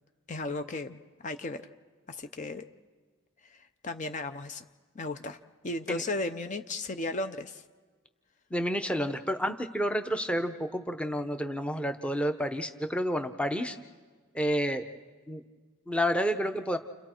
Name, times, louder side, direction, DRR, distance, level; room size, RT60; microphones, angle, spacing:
voice 1, 0.3-1.0 1.2-1.6 2.1-2.6 3.4-4.6 4.9-7.6, left 2 dB, 35° left, 8 dB, 0.6 m, -35 dB
voice 2, 8.5-13.8 14.3-14.8 15.3-15.4 15.9-16.8, equal, 5° left, 8 dB, 0.8 m, -30 dB
30.0 x 29.0 x 4.5 m, 1.4 s
head